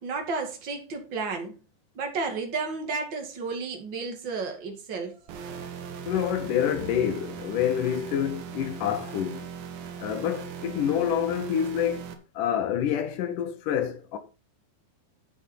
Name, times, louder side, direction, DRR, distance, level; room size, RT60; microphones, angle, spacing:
voice 1, 0.0-1.5 1.9-5.2, right 4 dB, 40° right, 1.8 m, -32 dB
sound 1, 5.3-12.1, right 7 dB, 65° right, 2.7 m, -39 dB
voice 2, 6.1-9.5 10.0-12.1 12.3-14.2, left 9 dB, 70° left, 2.0 m, -27 dB
9.1 x 8.5 x 4.5 m
omnidirectional pair, 5.3 m